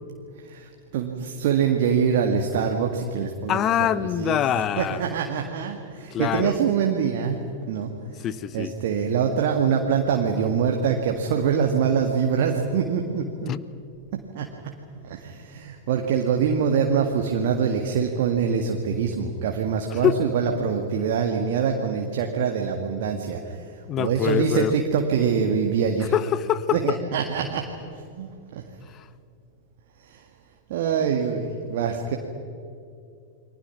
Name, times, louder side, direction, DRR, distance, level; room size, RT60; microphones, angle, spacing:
voice 1, 0.5-3.7 4.0-4.4 4.8-7.4 7.7-7.9 8.5-13.5 14.3-14.5 15.0-23.6 24.0-26.1 26.7-27.6 28.2-28.6 30.1-30.2 30.7-32.2, right 7 dB, 55° right, 2 dB, 1.9 m, -24 dB
voice 2, 3.5-5.0 6.1-6.6 8.2-8.7 13.5-13.6 19.9-20.2 23.9-24.7 26.1-27.0 28.9-29.1, left 10 dB, 30° left, 17 dB, 0.9 m, -24 dB
29.5 x 23.5 x 6.1 m, 2.5 s
figure-of-eight pair, 90°, 0 cm